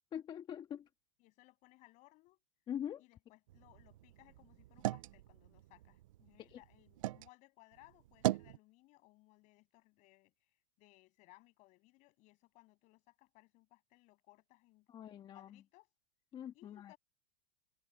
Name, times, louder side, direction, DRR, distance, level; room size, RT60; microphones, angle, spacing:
voice 1, 0.1-0.9 2.7-3.0 6.4-6.6 14.9-15.6 16.3-16.9, left 9 dB, 30° left, 1.6 m, -44 dB
voice 2, 1.2-2.4 3.0-15.9 16.5-17.0, left 21 dB, 45° left, 7.8 m, -65 dB
sound 1, 3.5-7.3 7.7-8.6, right 16 dB, 80° right, 0.5 m, -40 dB
open air
supercardioid pair, 130°, 17 cm